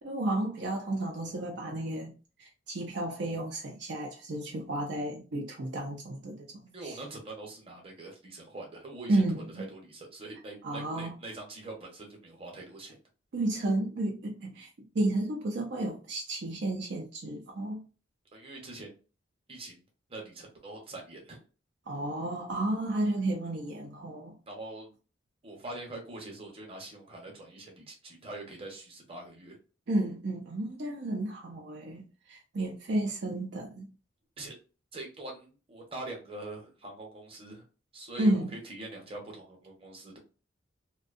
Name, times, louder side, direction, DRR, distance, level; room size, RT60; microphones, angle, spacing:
voice 1, 0.0-6.5 6.8-7.0 9.1-9.7 10.6-11.1 13.3-14.7 14.9-17.8 21.9-24.3 29.9-33.9 38.2-38.5, right 1 dB, 60° right, 0.5 m, -32 dB
voice 2, 6.7-9.2 9.5-13.0 18.3-19.0 19.5-19.8 20.1-21.4 24.5-24.9 25.4-29.6 34.4-34.5 34.9-37.6 37.9-40.2, right 2 dB, 30° right, 0.8 m, -43 dB
2.5 x 2.2 x 2.4 m
head